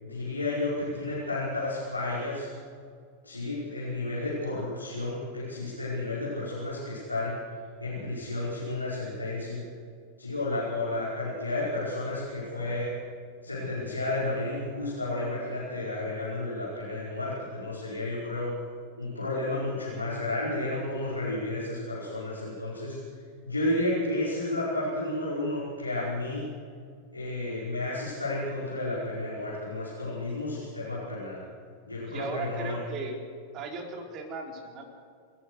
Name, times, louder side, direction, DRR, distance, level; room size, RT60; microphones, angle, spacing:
voice 1, 0.0-2.5 3.2-7.3 7.8-9.6 10.2-13.0 13.4-18.5 19.0-23.0 23.4-26.4 27.1-31.4 31.9-32.8, left 2 dB, 85° left, -8 dB, 5.5 m, -32 dB
voice 2, 32.1-33.2 33.5-34.8, right 3 dB, 35° right, 2 dB, 4.3 m, -37 dB
29.0 x 14.5 x 6.4 m, 2.1 s
figure-of-eight pair, 90°, 0 cm